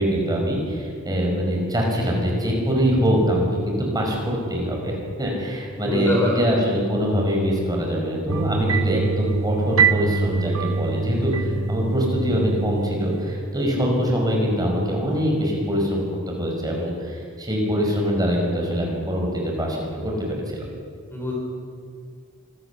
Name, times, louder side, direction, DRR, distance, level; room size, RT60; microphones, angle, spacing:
voice 1, 0.0-19.8 20.0-20.1 20.5-20.7, equal, 20° right, -1 dB, 5.4 m, -23 dB
voice 2, 5.8-6.4 21.1-21.3, left 1 dB, 10° left, -2 dB, 4.4 m, -24 dB
sound 1, 8.3-13.3, right 5 dB, 65° right, 1.3 m, -24 dB
26.0 x 16.5 x 7.1 m, 2.2 s
head